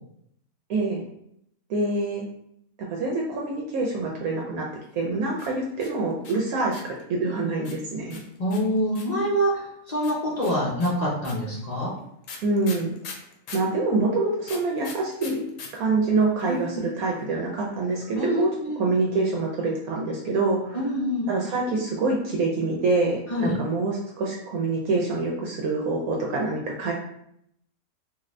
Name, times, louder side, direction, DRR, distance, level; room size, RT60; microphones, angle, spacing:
voice 1, 0.7-1.0 1.7-2.2 2.9-4.7 4.9-8.2 12.4-12.9 13.5-15.4 15.7-18.5 18.8-20.8 21.3-26.9, right 3 dB, 75° right, -1 dB, 1.0 m, -25 dB
sound 1, 5.3-7.0 7.6-9.2 10.0-13.7 14.4-15.7 15.9-16.0 16.2-16.7, left 5 dB, 70° left, 0.9 m, -41 dB
voice 2, 8.4-11.9 16.5-16.6 18.1-18.3 18.6-18.8 20.7-21.3 23.3-23.5, equal, 40° left, -5 dB, 0.6 m, -25 dB
2.6 x 2.6 x 3.1 m, 0.74 s
omnidirectional pair, 1.5 m